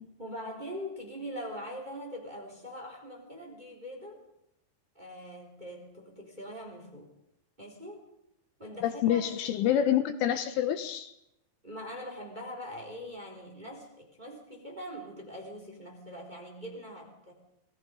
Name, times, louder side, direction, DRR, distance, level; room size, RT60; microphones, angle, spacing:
voice 1, 0.2-4.2 4.9-7.1 7.6-8.1 8.6-9.2 11.6-17.3, equal, 10° right, 2 dB, 3.3 m, -42 dB
voice 2, 8.8-11.1, left 10 dB, 80° left, 10 dB, 3.3 m, -27 dB
28.5 x 19.5 x 5.2 m, 0.82 s
omnidirectional pair, 6.0 m